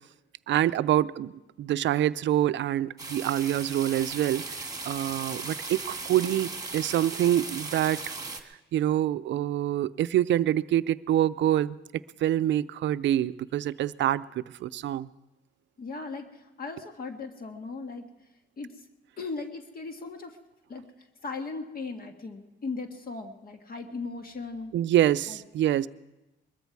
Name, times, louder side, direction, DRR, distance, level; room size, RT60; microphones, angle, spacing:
voice 1, 0.5-1.3 1.6-8.0 8.7-11.8 12.2-15.1 24.7-25.9, right 12 dB, 70° right, 16 dB, 0.5 m, -26 dB
sound 1, 3.0-8.4, right 3 dB, 20° right, 1.7 m, -37 dB
voice 2, 15.8-18.1 18.6-18.8 19.2-20.4 20.7-24.7 25.3-25.4, left 4 dB, 50° left, 5 dB, 1.6 m, -38 dB
21.5 x 14.0 x 4.7 m, 0.99 s
cardioid pair, 90°, 20 cm